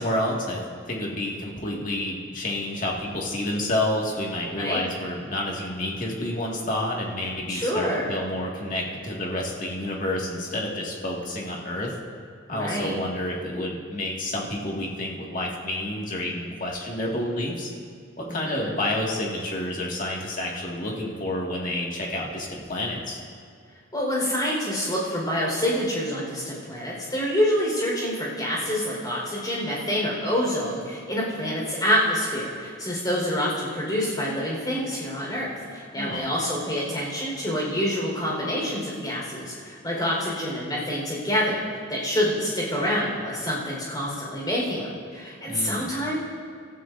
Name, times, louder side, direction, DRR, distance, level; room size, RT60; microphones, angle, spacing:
voice 1, 0.0-11.9 12.5-17.7 18.2-23.2 36.0-36.3 45.5-45.9, left 1 dB, 40° left, -2 dB, 2.1 m, -29 dB
voice 2, 7.5-8.2 12.5-13.0 18.3-18.8 23.9-41.6 41.9-46.2, equal, 20° left, -4 dB, 4.6 m, -27 dB
27.0 x 13.0 x 2.7 m, 2.2 s
head